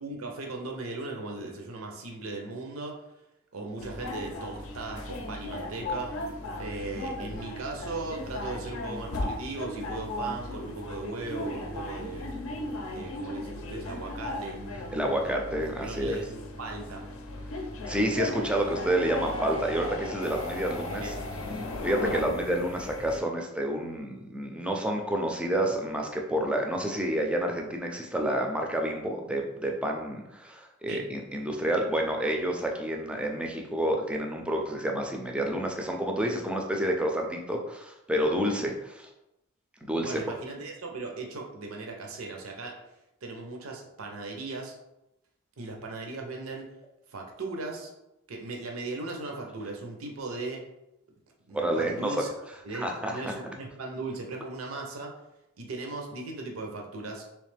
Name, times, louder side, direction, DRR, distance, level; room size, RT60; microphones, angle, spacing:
voice 1, 0.0-3.0 3.5-6.2 6.6-12.3 12.8-14.6 15.2-15.3 15.8-17.0 20.6-21.3 30.9-31.0 40.0-42.8 43.2-44.8 45.6-46.7 47.1-47.9 48.3-50.7 51.5-52.3 52.6-55.1 55.6-57.2, right 3 dB, 80° right, 1 dB, 0.7 m, -38 dB
sound 1, 3.8-23.2, left 2 dB, 75° left, 0.5 m, -36 dB
voice 2, 14.9-16.2 17.9-21.1 21.8-39.1 39.8-40.2 51.5-52.2 52.7-53.2, right 1 dB, 5° right, 1 dB, 0.4 m, -29 dB
3.4 x 3.1 x 3.3 m, 0.90 s
head